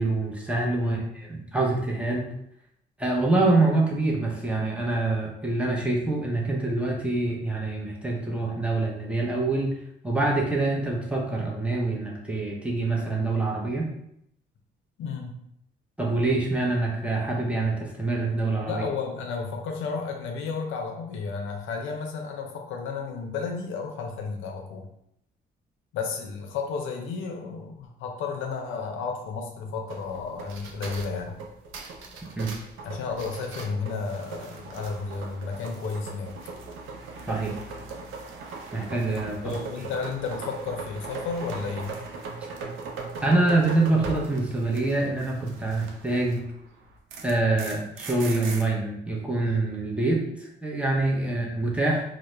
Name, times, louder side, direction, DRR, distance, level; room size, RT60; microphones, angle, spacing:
voice 1, 0.0-2.3 3.0-9.7 10.0-13.9 16.0-18.8 32.4-32.5 37.3-37.5 38.7-39.5 43.2-46.4 47.2-52.0, right 2 dB, 5° right, -3 dB, 0.6 m, -25 dB
voice 2, 15.0-15.4 18.7-24.9 25.9-31.4 32.8-36.3 39.4-41.9, left 5 dB, 80° left, 2 dB, 0.5 m, -32 dB
sound 1, 29.9-46.5 46.8-48.6, right 4 dB, 80° right, 0.4 m, -39 dB
2.2 x 2.0 x 3.0 m, 0.76 s
cardioid pair, 90°, 20 cm